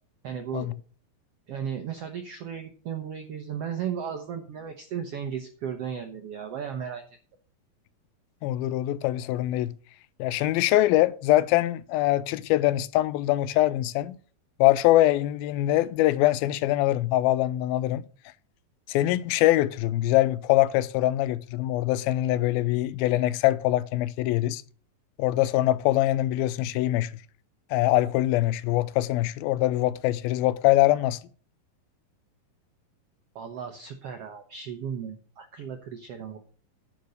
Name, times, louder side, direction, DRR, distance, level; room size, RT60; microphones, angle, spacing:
voice 1, 0.2-0.7 1.5-7.0 33.3-36.4, right 8 dB, 80° right, 1.4 m, -35 dB
voice 2, 8.4-9.7 10.2-14.2 14.6-18.0 18.9-24.6 25.2-27.1 27.7-31.2, left 15 dB, 90° left, 2.4 m, -23 dB
10.5 x 5.4 x 6.5 m
omnidirectional pair, 4.2 m